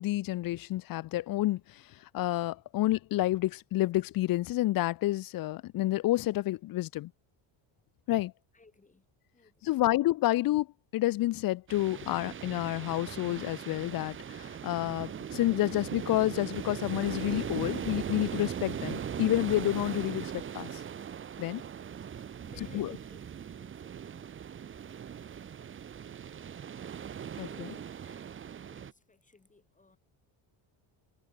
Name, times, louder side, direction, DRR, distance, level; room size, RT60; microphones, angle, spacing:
voice 1, 0.0-7.1 8.1-8.3 9.6-10.7 10.9-20.8 21.4-21.6 22.7-22.9 27.4-27.7, left 16 dB, 45° left, 0.5 m, -29 dB
voice 2, 8.5-9.0 9.3-9.8 22.4-24.4 27.3-30.0, left 3 dB, 15° left, 6.3 m, -59 dB
sound 1, 11.7-28.9, right 8 dB, 25° right, 0.8 m, -39 dB
cardioid pair, 145°, 49 cm